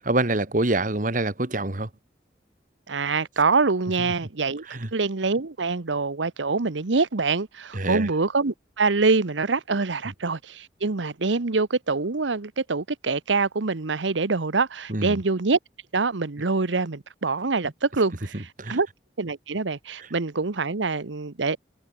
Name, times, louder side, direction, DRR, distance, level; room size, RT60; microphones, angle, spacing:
voice 1, 0.0-1.9 4.7-4.9 7.7-8.1 14.9-15.2 18.6-18.8, right 2 dB, 45° right, 1.8 m, -25 dB
voice 2, 2.9-4.6 4.9-15.6 15.9-18.9 19.2-21.6, right 4 dB, 90° right, 1.0 m, -25 dB
head